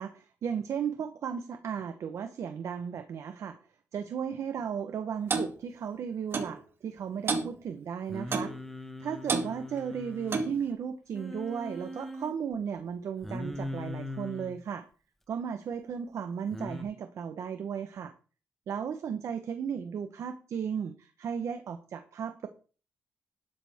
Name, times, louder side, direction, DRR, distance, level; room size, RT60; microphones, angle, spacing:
voice 1, 0.0-3.6 3.9-8.5 9.0-14.8 15.3-18.1 18.7-22.5, right 7 dB, 65° right, 8 dB, 1.1 m, -35 dB
Clock, 5.3-5.5 6.3-6.5 7.3-7.5 8.3-8.6 9.3-9.5 10.3-10.6, right 4 dB, 45° right, 2.1 m, -29 dB
Singing, 8.1-10.5 11.1-12.3 13.2-14.6 16.5-16.8, left 1 dB, 5° left, 1.4 m, -40 dB
12.0 x 11.0 x 3.6 m, 0.38 s
cardioid pair, 125°, 5 cm